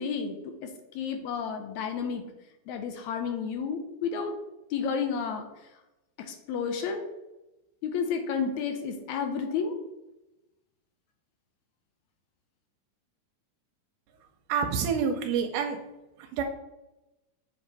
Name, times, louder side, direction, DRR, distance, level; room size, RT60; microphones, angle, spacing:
voice 1, 0.0-2.2 2.7-4.4 4.7-5.5 6.2-7.1 7.8-9.8, left 6 dB, 80° left, 5 dB, 1.9 m, -31 dB
voice 2, 14.5-15.8 16.2-16.4, right 6 dB, 85° right, 4 dB, 2.1 m, -28 dB
7.3 x 2.9 x 4.6 m, 0.96 s
omnidirectional pair, 3.5 m